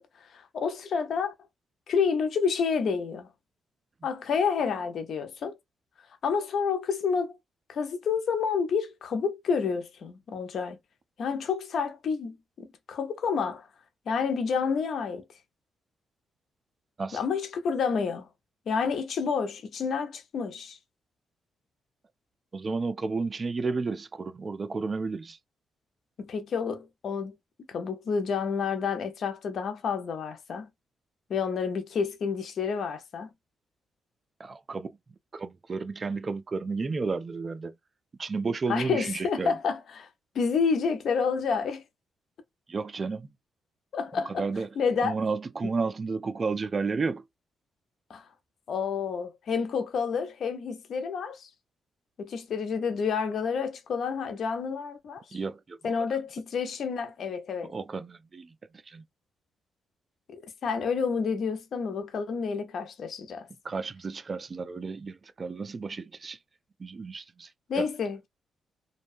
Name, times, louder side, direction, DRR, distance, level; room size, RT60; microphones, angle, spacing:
voice 1, 0.0-1.3 1.9-3.3 4.0-5.5 6.2-7.4 7.7-10.8 11.2-13.7 14.1-15.2 17.1-18.3 18.7-20.8 26.2-27.3 27.7-30.7 31.3-33.3 38.7-40.1 40.3-41.8 43.9-44.5 44.8-45.2 48.1-48.2 48.7-51.5 52.2-55.4 55.8-57.7 60.3-63.5 67.7-68.3, left 5 dB, 65° left, 0.6 m, -29 dB
voice 2, 22.5-25.4 34.4-34.9 35.3-37.8 38.2-39.5 42.7-43.3 44.4-44.7 45.0-47.2 55.3-55.9 57.7-58.6 58.9-59.0 63.6-66.4 66.8-67.5 67.8-67.9, right 4 dB, 40° right, 0.4 m, -32 dB
2.7 x 2.2 x 2.4 m
cardioid pair, 75°, 0 cm